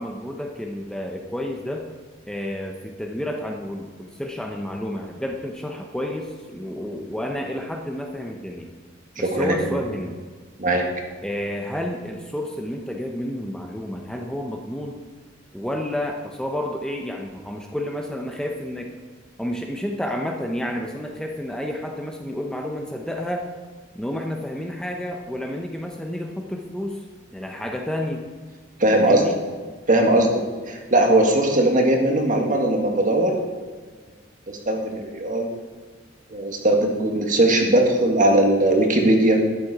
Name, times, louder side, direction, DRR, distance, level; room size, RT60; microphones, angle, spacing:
voice 1, 0.0-1.9 2.3-8.7 9.2-10.2 11.2-15.0 15.5-18.9 19.4-23.5 23.9-27.0 27.3-28.3 29.0-29.4, left 1 dB, 5° left, 1 dB, 0.8 m, -30 dB
voice 2, 9.2-9.5 10.6-10.9 28.8-29.2 29.9-33.4 34.5-35.5 36.3-39.4, right 1 dB, 45° right, 2 dB, 1.8 m, -19 dB
11.5 x 9.6 x 4.8 m, 1.5 s
head